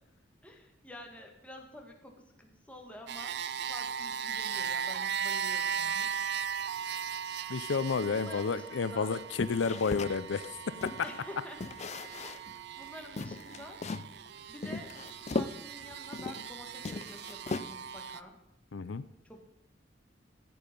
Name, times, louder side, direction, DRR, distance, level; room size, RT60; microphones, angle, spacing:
voice 1, 0.4-3.4 3.7-6.1 8.1-9.1 11.0-11.6 12.2-13.8 14.5-14.9 15.3-18.4 19.2-19.5, left 1 dB, 5° left, 1 dB, 1.8 m, -49 dB
sound 1, 3.1-18.2, right 7 dB, 65° right, 0.5 m, -38 dB
voice 2, 7.5-10.4 18.7-19.0, left 5 dB, 90° left, 14 dB, 0.5 m, -31 dB
sound 2, 9.4-11.2 11.6-12.6 12.8-12.9 13.2-14.1 14.6-16.5 16.8-18.0, left 3 dB, 40° left, 0.4 m, -38 dB
14.0 x 8.7 x 5.3 m, 0.86 s
head